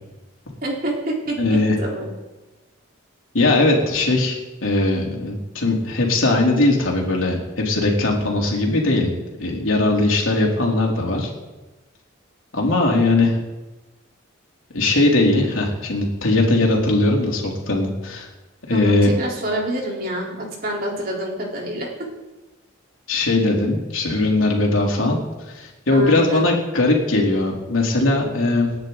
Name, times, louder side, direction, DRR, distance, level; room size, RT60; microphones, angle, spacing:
voice 1, 0.6-2.0 18.7-21.9 25.9-26.4, right 1 dB, 45° right, -2 dB, 4.0 m, -27 dB
voice 2, 1.4-1.8 3.3-9.1 9.4-11.3 12.5-13.3 14.7-18.3 18.7-19.1 23.1-25.2 25.5-28.7, left 2 dB, 75° left, -1 dB, 3.3 m, -19 dB
28.5 x 9.9 x 4.0 m, 1.1 s
head